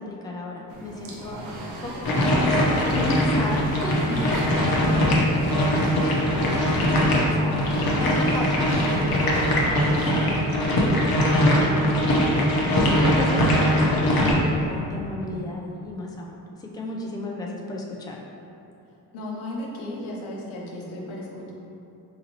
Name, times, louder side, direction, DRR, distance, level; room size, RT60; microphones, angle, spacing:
voice 1, 0.0-1.4 1.8-18.2, left 1 dB, 10° left, -2 dB, 0.4 m, -34 dB
sound 1, 0.7-10.2, right 1 dB, 80° right, 0.7 m, -35 dB
sound 2, 2.0-14.3, equal, 45° left, 0.9 m, -21 dB
voice 2, 3.9-4.3 19.1-21.5, left 1 dB, 75° left, -3 dB, 0.8 m, -34 dB
sound 3, 9.2-9.9 11.4-11.7 12.9-13.7, equal, 50° right, 0.9 m, -32 dB
4.0 x 2.6 x 2.8 m, 2.8 s
hypercardioid pair, 40°, 48 cm